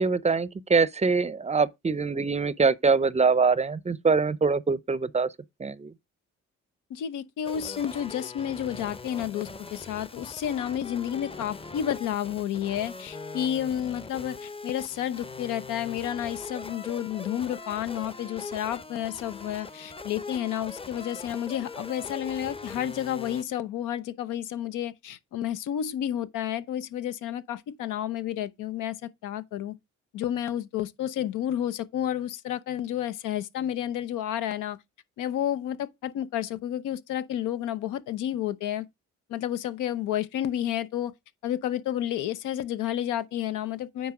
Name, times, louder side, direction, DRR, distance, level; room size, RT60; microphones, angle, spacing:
voice 1, 0.0-5.3 5.6-5.9, right 4 dB, 20° right, 0.5 m, -24 dB
voice 2, 6.9-29.7 30.1-34.8 35.2-38.9 39.3-41.1 41.4-44.1, left 11 dB, 85° left, 0.8 m, -31 dB
sound 1, 7.4-23.4, left 3 dB, 20° left, 0.8 m, -41 dB
9.4 x 4.2 x 4.8 m
cardioid pair, 90°, 30 cm